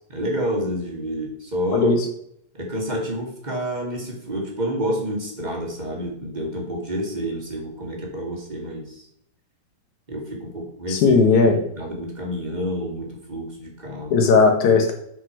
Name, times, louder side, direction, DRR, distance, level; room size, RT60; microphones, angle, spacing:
voice 1, 0.1-1.9 2.5-9.0 10.1-11.2 11.4-14.1, equal, 20° right, -1 dB, 1.5 m, -29 dB
voice 2, 10.9-11.6 14.1-14.9, left 4 dB, 70° left, 4 dB, 2.6 m, -16 dB
8.2 x 6.2 x 4.6 m, 0.73 s
omnidirectional pair, 3.7 m